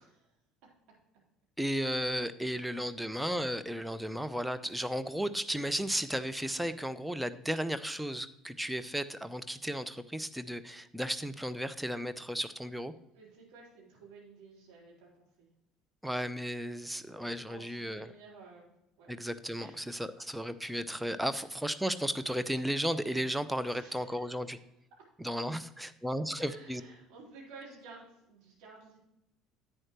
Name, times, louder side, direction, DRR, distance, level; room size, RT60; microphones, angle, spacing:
voice 1, 1.6-12.9 16.0-18.1 19.1-24.6 25.2-26.8, equal, 5° right, 11 dB, 0.6 m, -34 dB
voice 2, 13.1-15.5 17.5-18.7 19.0-19.1 19.6-20.2 21.3-21.5 23.6-24.6 26.3-29.0, right 4 dB, 60° right, -4 dB, 4.0 m, -53 dB
10.5 x 8.9 x 3.0 m, 0.83 s
figure-of-eight pair, 60°, 0 cm